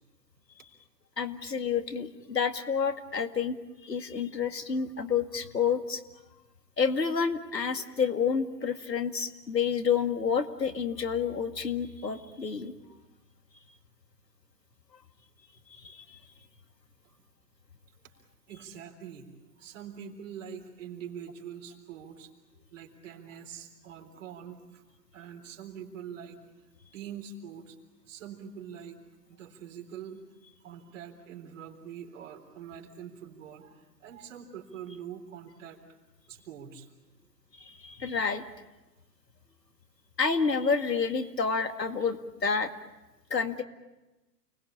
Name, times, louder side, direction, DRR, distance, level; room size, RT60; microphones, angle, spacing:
voice 1, 1.2-3.6 3.8-6.0 6.8-12.7 15.8-16.2 37.6-38.4 40.2-42.7 43.3-43.6, left 6 dB, 80° left, 8 dB, 2.1 m, -29 dB
voice 2, 18.5-24.8 25.1-26.4 26.9-27.8 28.1-29.0 29.3-30.3 30.6-35.8 36.3-36.9, right 8 dB, 45° right, 3 dB, 3.8 m, -44 dB
29.5 x 20.5 x 8.7 m, 1.1 s
figure-of-eight pair, 115°, 50 cm